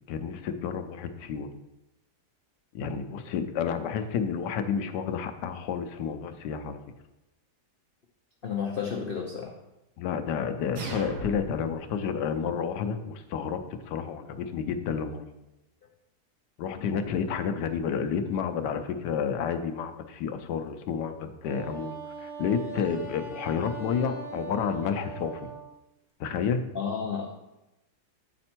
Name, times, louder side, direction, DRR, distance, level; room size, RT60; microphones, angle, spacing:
voice 1, 0.1-1.5 2.7-6.8 10.0-13.6 13.9-15.2 16.6-25.4 26.2-26.6, left 7 dB, 85° left, 8 dB, 1.3 m, -30 dB
voice 2, 8.4-9.6 16.8-16.9 17.1-17.3 26.7-27.3, left 6 dB, 65° left, 2 dB, 0.5 m, -32 dB
sound 1, 10.8-11.8, right 3 dB, 75° right, 1.6 m, -37 dB
Wind instrument woodwind instrument, 21.4-25.7, right 5 dB, ahead, 0.8 m, -40 dB
8.9 x 4.2 x 4.4 m, 0.96 s
omnidirectional pair, 1.8 m